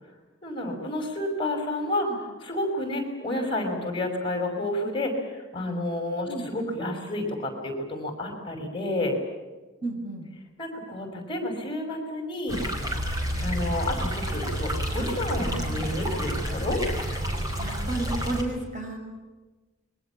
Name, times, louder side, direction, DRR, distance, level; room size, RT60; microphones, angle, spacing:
voice 1, 0.4-9.2 10.6-12.6 13.4-16.8, left 1 dB, 25° left, 3 dB, 5.5 m, -30 dB
voice 2, 9.8-10.3 15.5-15.7 16.6-16.7 17.6-19.0, right 2 dB, 35° right, 2 dB, 6.5 m, -32 dB
sound 1, 12.5-18.4, equal, 20° right, 5.2 m, -29 dB
29.0 x 23.0 x 7.2 m, 1.2 s
head